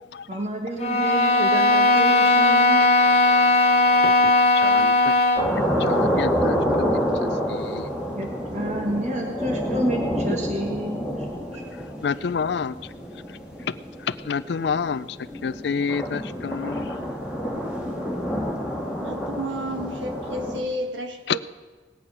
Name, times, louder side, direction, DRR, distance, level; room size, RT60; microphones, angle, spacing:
voice 1, 0.3-2.8 3.1-3.4 8.2-8.3 8.5-11.0 11.5-11.6, right 1 dB, 40° right, 1.5 m, -29 dB
sound 1, 0.8-5.5, left 2 dB, 35° left, 1.1 m, -18 dB
voice 2, 4.6-4.9 5.8-6.9 7.7-7.8 12.0-12.7 14.3-15.0 15.4-16.8, left 6 dB, 60° left, 0.4 m, -27 dB
sound 2, 5.4-20.6, equal, 5° right, 1.9 m, -28 dB
voice 3, 18.9-21.4, equal, 80° right, 1.4 m, -31 dB
19.0 x 8.8 x 5.6 m
head